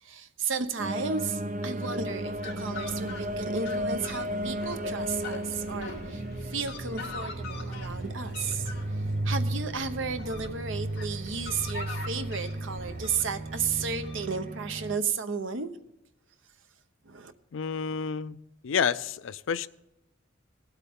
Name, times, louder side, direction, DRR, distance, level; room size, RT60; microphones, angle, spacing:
voice 1, 0.0-15.7 17.0-17.3, right 5 dB, 70° right, 10 dB, 0.9 m, -33 dB
sound 1, 0.8-15.0, right 1 dB, 40° right, 0.6 m, -34 dB
Fowl, 1.7-14.7, left 3 dB, 55° left, 2.8 m, -43 dB
voice 2, 17.5-18.4 18.6-19.7, left 6 dB, 75° left, 16 dB, 0.4 m, -29 dB
18.5 x 8.2 x 3.6 m, 0.88 s
head